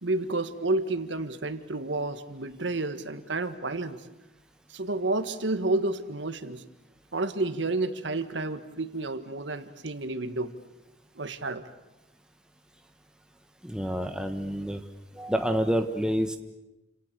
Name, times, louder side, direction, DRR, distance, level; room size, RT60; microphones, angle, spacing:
voice 1, 0.0-4.0 4.7-6.6 7.1-10.5 11.2-11.6, right 2 dB, 90° right, 10 dB, 1.7 m, -30 dB
voice 2, 13.6-14.8 15.1-16.4, equal, 5° right, 6 dB, 1.5 m, -28 dB
30.0 x 27.0 x 6.8 m, 0.98 s
head